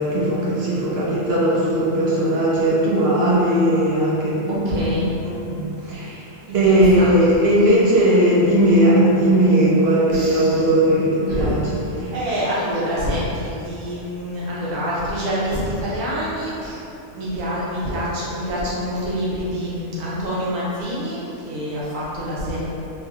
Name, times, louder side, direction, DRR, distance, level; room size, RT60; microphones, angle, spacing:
voice 1, 0.0-4.8 5.2-6.1 6.5-11.9, right 1 dB, 60° right, -6 dB, 0.7 m, -18 dB
voice 2, 4.5-5.1 6.5-7.1 10.1-10.6 11.3-11.5 12.1-16.8 17.1-22.7, equal, 85° right, -8 dB, 1.2 m, -26 dB
3.0 x 2.6 x 2.4 m, 2.9 s
omnidirectional pair, 1.3 m